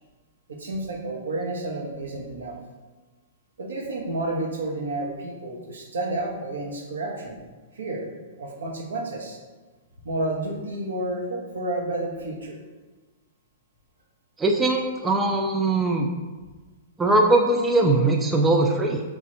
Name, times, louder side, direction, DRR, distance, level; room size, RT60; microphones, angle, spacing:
voice 1, 0.5-2.6 3.6-7.4 7.8-8.1 8.4-9.4 10.0-12.6, right 2 dB, 75° right, 0 dB, 0.7 m, -30 dB
voice 2, 14.4-16.1 17.0-19.0, right 2 dB, 15° right, 2 dB, 0.3 m, -21 dB
3.2 x 2.4 x 4.0 m, 1.3 s
figure-of-eight pair, 110°, 0 cm